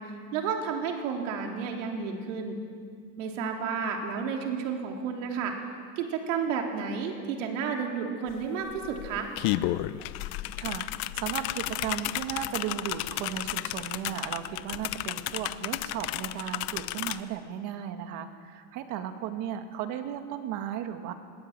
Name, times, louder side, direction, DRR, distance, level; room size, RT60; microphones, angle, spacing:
voice 1, 0.0-2.6 3.2-5.6 6.0-9.3, right 6 dB, 80° right, 2 dB, 3.5 m, -31 dB
sound 1, 8.3-8.4 8.7-17.2, left 16 dB, 55° left, 0.9 m, -33 dB
voice 2, 11.1-21.1, right 10 dB, 50° right, 7 dB, 2.0 m, -35 dB
21.5 x 19.5 x 8.8 m, 2.1 s
supercardioid pair, 155°, 38 cm